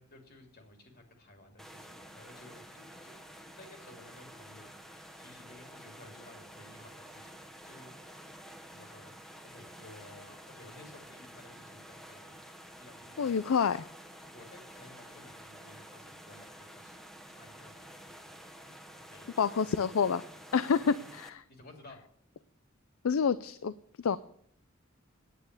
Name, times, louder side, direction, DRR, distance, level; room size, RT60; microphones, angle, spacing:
voice 1, 0.0-3.2 3.5-4.7 5.2-7.4 7.6-7.9 8.7-9.1 9.4-12.4 12.7-13.7 14.3-18.3 19.1-20.1 21.0-21.1 21.5-22.0, left 1 dB, 50° left, 4 dB, 2.8 m, -55 dB
sound 1, 1.6-21.3, equal, ahead, 1.2 m, -50 dB
voice 2, 13.2-13.8 19.4-20.2 20.5-21.3 23.0-24.2, left 6 dB, 85° left, 16 dB, 0.4 m, -28 dB
9.1 x 9.0 x 9.5 m, 0.65 s
head